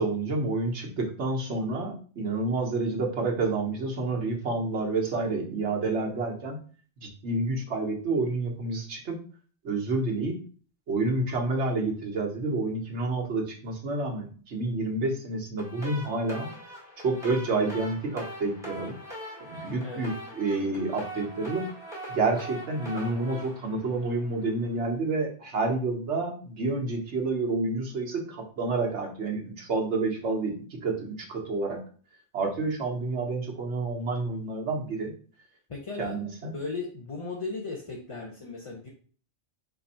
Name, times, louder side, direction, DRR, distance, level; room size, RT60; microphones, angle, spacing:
voice 1, 0.0-6.6 7.0-9.2 9.6-10.3 10.9-16.5 17.0-18.9 19.4-21.6 22.1-31.8 32.3-35.1 36.0-36.5, right 3 dB, 70° right, 1 dB, 1.3 m, -29 dB
sound 1, 15.6-24.7, equal, 5° right, 1.3 m, -42 dB
voice 2, 35.7-36.2 36.5-38.9, left 3 dB, 40° left, 0 dB, 0.5 m, -36 dB
4.5 x 2.6 x 4.2 m, 0.42 s
omnidirectional pair, 1.2 m